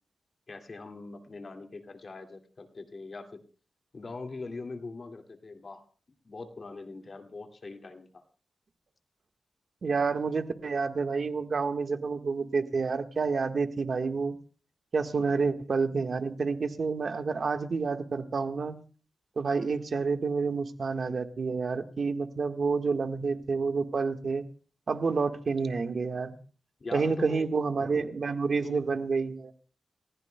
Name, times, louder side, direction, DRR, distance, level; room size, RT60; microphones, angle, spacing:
voice 1, 0.5-3.4 3.9-5.8 6.2-8.2 15.2-15.5 26.8-27.5 28.6-28.8, left 3 dB, 50° left, 4 dB, 2.2 m, -42 dB
voice 2, 9.8-14.4 14.9-18.8 19.4-24.5 24.9-26.4 26.9-29.5, right 4 dB, 60° right, 6 dB, 1.5 m, -29 dB
29.5 x 15.5 x 2.3 m, 0.39 s
wide cardioid pair, 90°, 0 cm